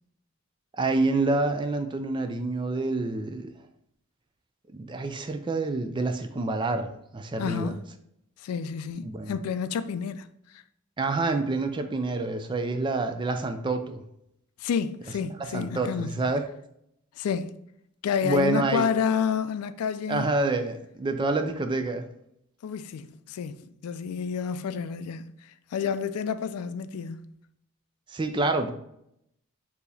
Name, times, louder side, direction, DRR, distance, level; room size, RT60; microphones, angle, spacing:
voice 1, 0.7-3.5 4.7-7.7 9.0-9.4 11.0-14.0 15.4-16.4 18.2-18.9 20.1-22.1 28.1-28.7, right 2 dB, 20° right, 0.3 m, -27 dB
voice 2, 7.4-7.8 8.4-10.6 14.6-16.2 17.2-17.6 18.0-20.3 22.6-27.3, left 7 dB, 85° left, 0.3 m, -30 dB
4.5 x 2.8 x 3.3 m
head